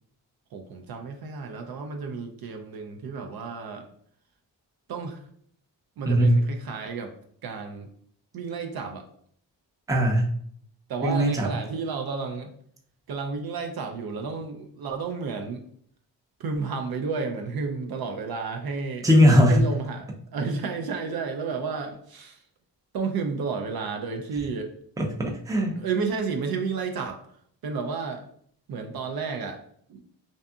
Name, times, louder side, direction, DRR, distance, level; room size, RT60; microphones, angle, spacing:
voice 1, 0.5-3.9 4.9-5.2 6.0-7.1 7.4-7.9 8.3-9.1 10.9-12.5 13.1-15.7 16.4-19.1 19.5-22.4 22.9-24.7 25.8-27.2 27.6-28.3 28.7-29.6 29.9-30.0, right 5 dB, 60° right, 4 dB, 0.5 m, -31 dB
voice 2, 9.9-10.3 11.0-11.5 19.0-19.6 25.0-25.8, equal, 10° right, 0 dB, 0.5 m, -19 dB
2.6 x 2.5 x 2.3 m, 0.64 s
cardioid pair, 65°, 43 cm